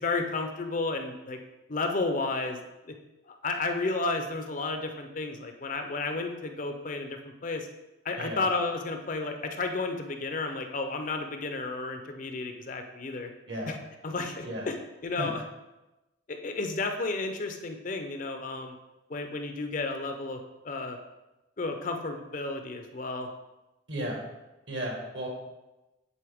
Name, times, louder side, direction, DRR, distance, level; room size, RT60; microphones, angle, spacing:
voice 1, 0.0-1.4 1.7-2.6 2.9-3.0 3.3-7.7 8.0-13.3 13.7-13.8 14.0-14.7 15.0-15.4 16.3-18.7 19.1-20.4 20.6-21.0 21.6-23.3, left 3 dB, 40° left, 5 dB, 0.5 m, -32 dB
voice 2, 8.2-8.5 13.5-13.8 14.4-14.7 15.2-15.3 23.9-24.2 24.7-25.3, equal, 60° right, 0 dB, 1.8 m, -34 dB
9.9 x 4.1 x 3.5 m, 1.0 s
head